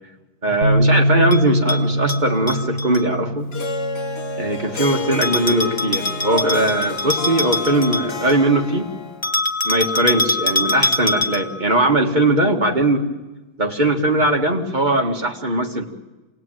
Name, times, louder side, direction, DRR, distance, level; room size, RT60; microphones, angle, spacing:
voice 1, 0.4-3.5 4.4-8.9 9.6-13.1 13.6-15.9, right 1 dB, 30° right, 1 dB, 2.1 m, -20 dB
Bass guitar, 0.6-6.8, right 1 dB, 65° right, 3.9 m, -23 dB
Bell, 1.3-3.0 5.2-8.5 9.2-11.6, left 2 dB, 20° left, 0.9 m, -24 dB
Harp, 3.5-9.3, left 3 dB, 85° left, 1.7 m, -30 dB
27.0 x 18.5 x 9.1 m, 1.1 s
omnidirectional pair, 1.7 m